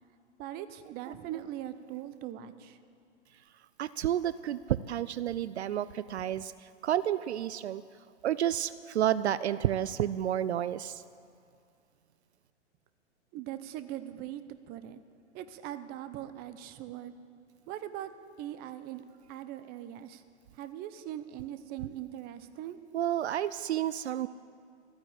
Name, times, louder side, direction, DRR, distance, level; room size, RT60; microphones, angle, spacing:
voice 1, 0.4-2.8 13.3-15.0 15.3-17.2 17.7-18.1 18.4-20.2 20.6-22.8, right 12 dB, 25° right, 12 dB, 0.8 m, -41 dB
voice 2, 3.8-6.5 6.8-7.8 8.2-11.0 22.9-24.3, right 11 dB, 70° right, 16 dB, 0.5 m, -30 dB
14.0 x 9.6 x 8.8 m, 2.4 s
hypercardioid pair, 115°, 35 cm